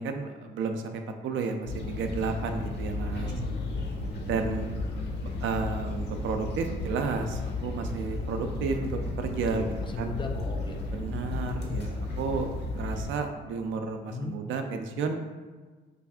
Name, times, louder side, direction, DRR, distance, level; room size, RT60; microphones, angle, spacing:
voice 1, 0.0-3.3 4.3-4.7 5.2-10.1 10.9-15.1, right 4 dB, 75° right, 6 dB, 0.4 m, -32 dB
sound 1, 1.7-13.1, left 2 dB, 60° left, 0.7 m, -34 dB
voice 2, 3.1-3.7 9.5-10.8 14.1-14.3, left 2 dB, 25° left, 2 dB, 0.5 m, -37 dB
3.3 x 2.3 x 3.5 m, 1.4 s
cardioid pair, 90°, 20 cm